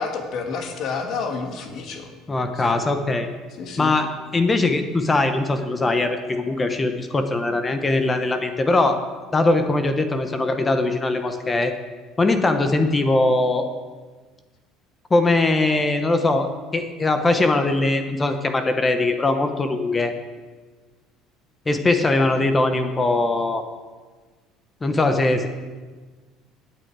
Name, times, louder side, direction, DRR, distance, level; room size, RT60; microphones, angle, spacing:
voice 1, 0.0-2.1 2.6-2.7 3.6-3.9, left 5 dB, 50° left, 4 dB, 2.0 m, -29 dB
voice 2, 2.3-3.3 3.8-9.0 9.3-11.7 12.2-13.7 15.1-20.1 21.7-23.7 24.8-25.5, left 2 dB, 15° left, 7 dB, 1.0 m, -21 dB
17.0 x 9.3 x 4.8 m, 1.4 s
cardioid pair, 150°, 0 cm